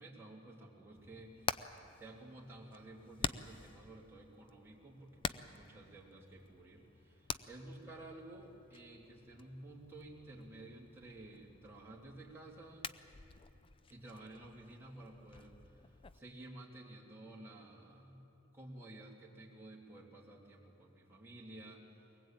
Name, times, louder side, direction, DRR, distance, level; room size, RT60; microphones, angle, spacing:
voice 1, 0.0-1.6 2.0-12.9 13.9-15.6 15.8-18.2 18.5-22.1, right 1 dB, 10° right, -4 dB, 3.1 m, -53 dB
Hammer, 1.0-16.2, left 5 dB, 25° left, 0.5 m, -47 dB
22.5 x 19.5 x 9.0 m, 2.9 s
head